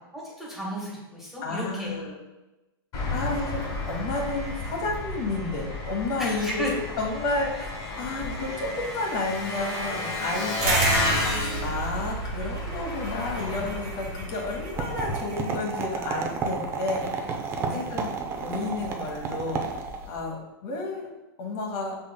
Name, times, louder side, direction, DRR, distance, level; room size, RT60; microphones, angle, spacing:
voice 1, 0.1-2.1 6.2-7.0 17.7-17.9, equal, ahead, -5 dB, 1.2 m, -34 dB
voice 2, 1.4-2.1 3.1-7.7 8.0-17.3 17.6-19.8 20.1-21.1 21.4-21.9, left 3 dB, 45° left, -1 dB, 1.0 m, -31 dB
Engine, 2.9-15.1, left 2 dB, 30° left, 1.3 m, -32 dB
sound 1, 10.6-15.5, right 3 dB, 45° right, 1.0 m, -31 dB
sound 2, 14.8-20.2, right 4 dB, 20° right, 0.4 m, -32 dB
5.5 x 3.8 x 2.2 m, 1.1 s
hypercardioid pair, 140°, 13 cm